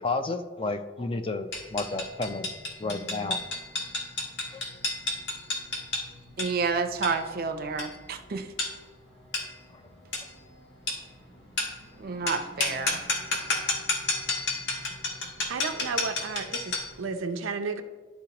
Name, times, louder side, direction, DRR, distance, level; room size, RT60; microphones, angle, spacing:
voice 1, 0.0-2.5 2.8-3.4 4.5-4.6 9.7-9.8, left 3 dB, 25° left, 8 dB, 0.4 m, -31 dB
sound 1, 1.5-17.0, left 2 dB, 60° left, 1.5 m, -32 dB
voice 2, 6.4-8.5 12.0-13.0, right 4 dB, 50° right, 7 dB, 0.5 m, -30 dB
voice 3, 15.5-17.8, right 4 dB, 90° right, 6 dB, 0.6 m, -33 dB
11.5 x 3.8 x 2.9 m, 1.3 s
head